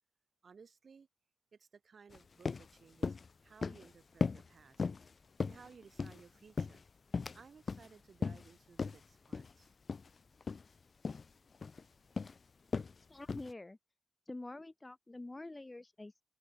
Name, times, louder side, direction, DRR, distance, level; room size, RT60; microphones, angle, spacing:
voice 1, 0.4-1.1 1.5-3.2 3.4-4.8 5.4-6.8 7.3-9.7, right 5 dB, 60° right, 3.2 m, -59 dB
sound 1, 2.1-2.2 2.5-2.7 3.0-3.3 3.6-3.9 4.2-4.5 4.8-5.1 5.4-6.2 6.6-7.4 7.7-7.9 8.2-8.5 8.8-9.0 9.3-9.5 9.9-10.1 10.4-10.6 11.0-11.3 11.6-11.8 12.2-12.4 12.7-12.9 13.3-13.5, left 4 dB, 50° left, 0.5 m, -37 dB
voice 2, 13.1-13.8 14.3-16.2, left 2 dB, 20° left, 1.3 m, -47 dB
cardioid pair, 80°, 0 cm